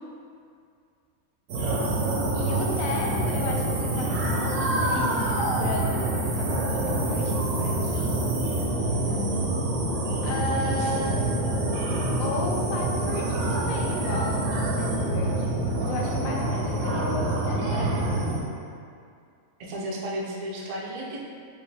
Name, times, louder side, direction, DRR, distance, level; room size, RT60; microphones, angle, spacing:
sound 1, 1.5-18.4, right 1 dB, 80° right, 1.2 m, -26 dB
voice 1, 2.3-5.3 5.6-8.3 10.2-11.2 12.2-14.3 14.7-15.5 15.8-18.0, left 2 dB, 70° left, -1 dB, 1.0 m, -34 dB
voice 2, 10.6-11.1 19.6-21.2, equal, 60° right, -4 dB, 0.4 m, -34 dB
5.3 x 2.6 x 3.4 m, 2.3 s
omnidirectional pair, 1.5 m